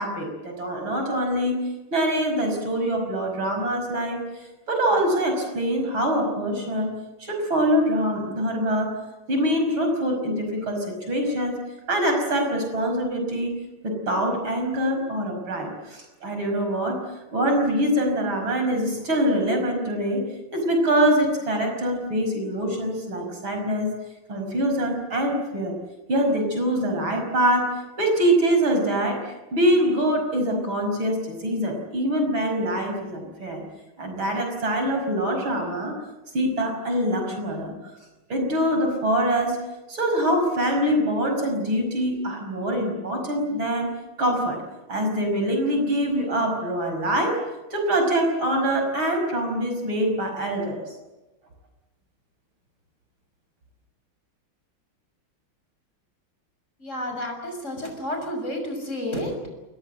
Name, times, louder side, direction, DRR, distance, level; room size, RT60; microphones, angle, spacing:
voice 1, 0.0-1.6 1.9-4.2 4.7-6.9 7.2-8.9 9.3-11.6 11.9-13.6 13.8-17.0 17.3-20.3 20.5-23.9 24.3-25.7 26.1-27.7 28.0-33.6 34.0-36.0 36.3-37.7 38.3-39.6 39.9-43.9 44.2-44.6 44.9-47.4 47.7-50.8, equal, 65° right, 3 dB, 6.3 m, -24 dB
voice 2, 56.8-59.5, left 1 dB, 35° left, 4 dB, 6.7 m, -31 dB
28.5 x 20.5 x 7.7 m, 1.1 s
omnidirectional pair, 2.4 m